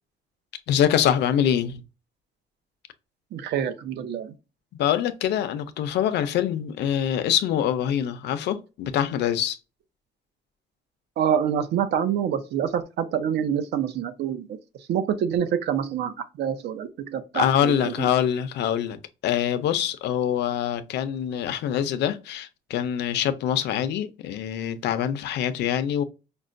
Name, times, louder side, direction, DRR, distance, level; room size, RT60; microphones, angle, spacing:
voice 1, 0.7-1.8 4.8-9.6 17.3-26.0, left 10 dB, 85° left, 0.5 m, -24 dB
voice 2, 3.3-4.3 11.2-14.5 14.9-17.8, right 8 dB, 80° right, 0.6 m, -26 dB
5.3 x 2.1 x 2.5 m
cardioid pair, 160°, 17 cm